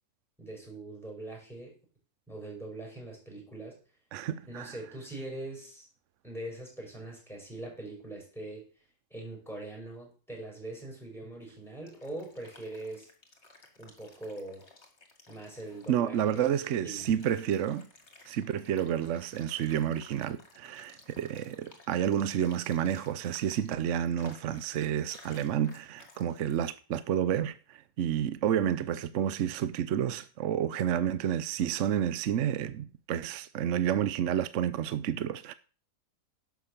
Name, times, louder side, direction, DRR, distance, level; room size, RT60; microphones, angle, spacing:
voice 1, 0.4-1.8 2.3-3.8 4.5-5.9 6.2-8.7 9.1-13.1 13.8-14.7 15.3-17.1, right 2 dB, ahead, 6.1 m, -42 dB
voice 2, 4.1-4.7 15.9-17.9 18.3-35.5, right 10 dB, 65° right, 0.9 m, -30 dB
sound 1, 11.6-26.6, left 3 dB, 50° left, 2.3 m, -56 dB
11.0 x 6.0 x 6.7 m
omnidirectional pair, 1.5 m